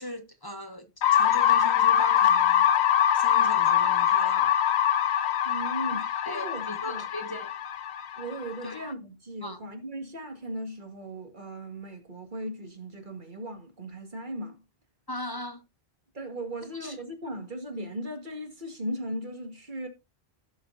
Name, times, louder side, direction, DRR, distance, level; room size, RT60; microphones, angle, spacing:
voice 1, 0.0-2.7 3.1-4.6 6.2-7.5 8.6-8.8 9.4-9.6 15.1-15.6 16.8-17.0, left 1 dB, 20° left, 1.2 m, -39 dB
sound 1, 1.0-8.9, left 10 dB, 80° left, 1.0 m, -23 dB
voice 2, 5.5-7.0 8.2-14.6 16.1-19.9, right 1 dB, 50° right, 2.2 m, -37 dB
16.0 x 6.3 x 2.6 m
omnidirectional pair, 1.1 m